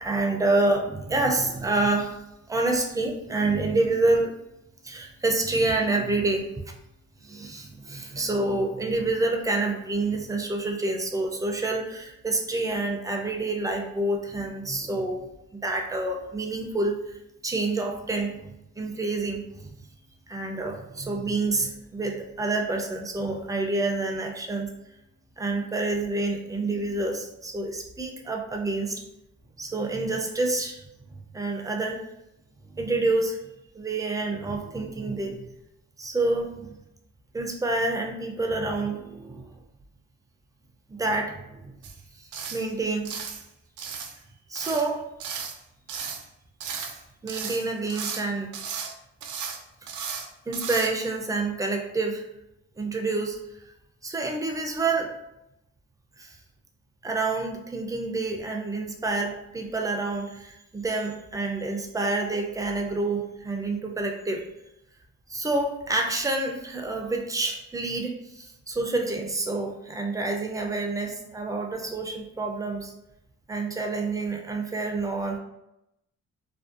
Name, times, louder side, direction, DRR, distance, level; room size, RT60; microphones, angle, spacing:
voice 1, 0.0-4.4 4.8-6.7 7.2-15.3 15.5-17.2 17.4-19.4 20.3-24.7 25.4-29.0 29.6-30.9 31.3-32.0 32.7-33.4 33.7-35.5 36.0-36.8 37.3-39.5 40.9-41.7 42.2-43.2 44.5-45.1 46.7-47.0 47.2-48.5 50.5-52.2 52.8-53.4 54.0-55.1 56.2-56.4 57.0-64.5 65.3-72.9 73.5-75.4, right 2 dB, 10° right, 2 dB, 0.3 m, -28 dB
sound 1, 41.8-42.0 42.3-42.7 43.0-43.4 43.8-44.2 44.5-44.9 45.2-45.6 45.9-46.2 46.6-47.0 47.3-48.2 48.5-48.9 49.2-49.6 49.9-50.3 50.5-50.9, right 6 dB, 75° right, 0.4 m, -35 dB
2.6 x 2.1 x 2.4 m, 0.86 s
cardioid pair, 90°, 30 cm